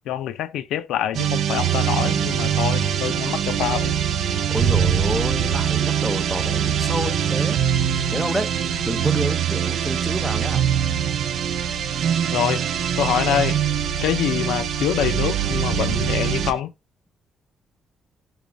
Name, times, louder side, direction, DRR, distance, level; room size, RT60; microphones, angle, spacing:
voice 1, 0.1-3.9 12.3-12.6 13.0-13.6 14.0-16.7, left 10 dB, 85° left, 0.4 m, -25 dB
sound 1, 1.1-16.6, right 8 dB, 70° right, 0.4 m, -23 dB
voice 2, 4.3-7.6 8.1-8.5 8.8-10.6, equal, ahead, 0.5 m, -29 dB
3.2 x 3.1 x 2.5 m
cardioid pair, 90°, 0 cm